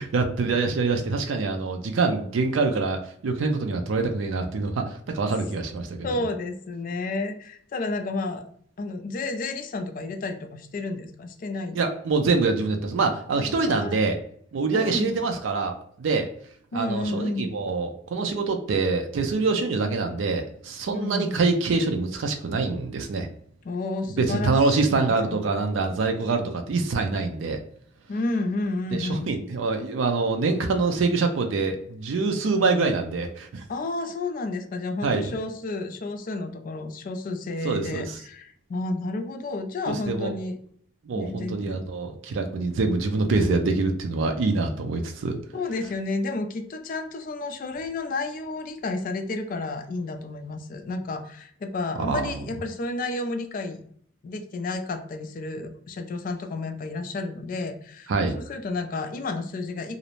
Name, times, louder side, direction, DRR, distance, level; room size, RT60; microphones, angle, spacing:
voice 1, 0.0-6.1 11.7-14.2 14.5-16.3 16.7-23.3 24.2-27.6 28.9-33.6 35.0-35.3 37.6-38.2 39.9-40.3 41.1-45.4 52.0-52.4 58.1-58.4, right 3 dB, 85° right, 4 dB, 0.4 m, -25 dB
voice 2, 6.0-8.5 8.8-11.8 13.5-14.0 14.7-15.1 16.7-17.5 20.9-21.4 23.6-25.4 28.1-29.3 33.7-40.6 41.1-41.8 45.5-53.8 54.2-60.0, left 2 dB, 45° left, 7 dB, 0.3 m, -31 dB
2.5 x 2.0 x 2.9 m, 0.62 s
head